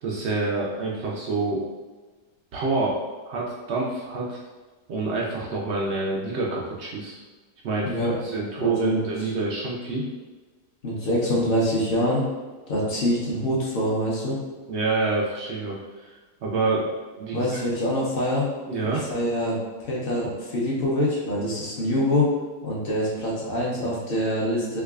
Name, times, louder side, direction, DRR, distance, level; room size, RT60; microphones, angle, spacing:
voice 1, 0.0-1.6 2.5-3.0 3.2-4.4 4.9-7.2 7.6-10.0 14.7-15.8 16.0-16.9 17.2-17.5 18.7-19.1, right 3 dB, 75° right, -4 dB, 0.6 m, -27 dB
voice 2, 7.8-8.2 8.6-9.1 10.8-12.2 12.7-14.4 17.3-18.5 18.9-22.3 22.6-24.8, equal, 50° left, -5 dB, 0.7 m, -25 dB
4.6 x 2.3 x 2.3 m, 1.3 s
omnidirectional pair, 1.8 m